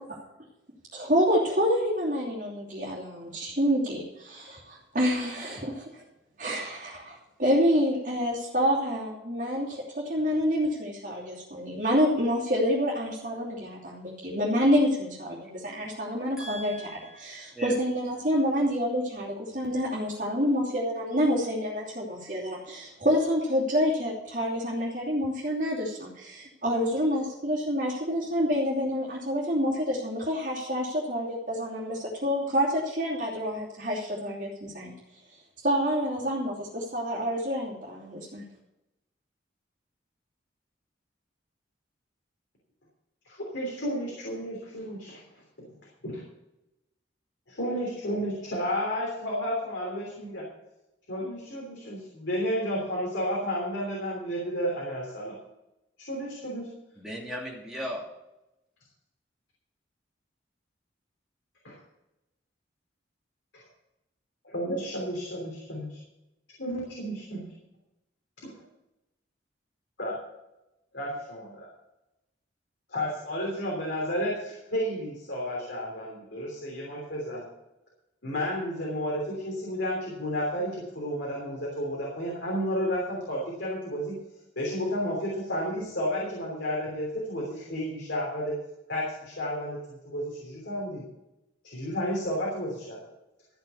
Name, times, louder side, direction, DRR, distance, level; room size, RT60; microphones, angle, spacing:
voice 1, 0.9-6.0 6.4-16.7 17.1-34.9 35.3-38.4, equal, 40° right, -9 dB, 2.9 m, -28 dB
voice 2, 16.4-17.8 57.0-58.1, equal, 5° right, -4 dB, 2.8 m, -38 dB
voice 3, 43.3-45.2 45.6-45.8 46.0-46.2 47.5-50.5 51.1-55.4 56.1-56.7 61.6-61.8 64.4-66.0 66.6-67.4 70.0-70.2 70.9-71.7 72.9-77.5 78.2-84.1 84.6-88.5 88.9-91.0 91.6-93.1, equal, 70° left, -3 dB, 3.3 m, -32 dB
13.5 x 6.7 x 7.1 m, 0.93 s
head